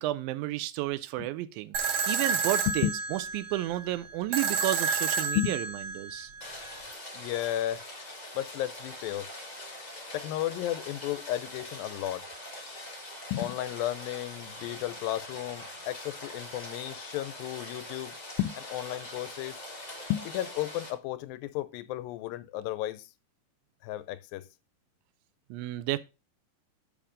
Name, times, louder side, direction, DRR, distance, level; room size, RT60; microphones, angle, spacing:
voice 1, 0.0-5.7 6.0-6.3 25.5-26.0, right 15 dB, 90° right, 2.4 m, -32 dB
sound 1, 1.7-6.8, right 5 dB, 70° right, 1.5 m, -31 dB
Rain, 6.4-20.9, left 1 dB, 25° left, 0.8 m, -43 dB
voice 2, 7.1-7.8 8.4-9.3 10.1-12.2 13.3-19.6 20.1-23.1 23.8-24.5, left 14 dB, 85° left, 2.3 m, -33 dB
7.0 x 5.7 x 5.0 m
omnidirectional pair, 4.0 m